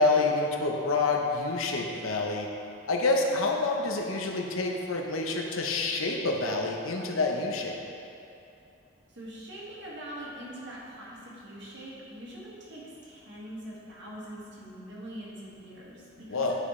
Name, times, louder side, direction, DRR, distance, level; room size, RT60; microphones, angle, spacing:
voice 1, 0.0-2.5 2.9-7.8 16.3-16.5, left 3 dB, 80° left, 1 dB, 0.8 m, -27 dB
voice 2, 9.1-16.5, right 1 dB, 55° right, -6 dB, 1.8 m, -43 dB
9.5 x 6.2 x 3.2 m, 2.8 s
head